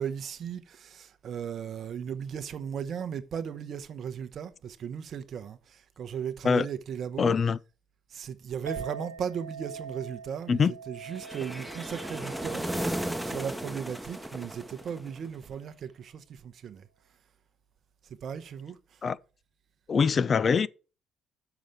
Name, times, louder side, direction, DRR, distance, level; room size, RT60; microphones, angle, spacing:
voice 1, 0.0-7.4 8.1-16.9 18.2-19.0, right 8 dB, 50° right, 0.8 m, -37 dB
voice 2, 7.2-7.6 10.5-10.7 19.0-19.2 19.9-20.7, left 5 dB, 40° left, 0.4 m, -23 dB
Chink clink, 8.7-15.0, right 6 dB, 85° right, 0.7 m, -45 dB
sound 1, 11.1-15.4, right 1 dB, 5° right, 0.9 m, -35 dB
7.0 x 6.2 x 5.9 m
figure-of-eight pair, 45°, 0 cm